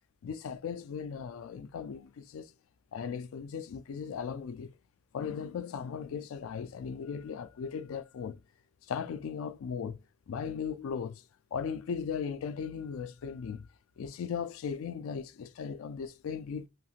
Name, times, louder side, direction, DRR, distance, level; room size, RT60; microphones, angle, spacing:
voice 1, 0.2-2.5 2.9-4.7 5.1-8.4 8.9-10.0 10.3-11.2 11.5-13.7 14.0-16.7, left 6 dB, 70° left, 0.3 m, -37 dB
3.0 x 2.8 x 2.4 m
head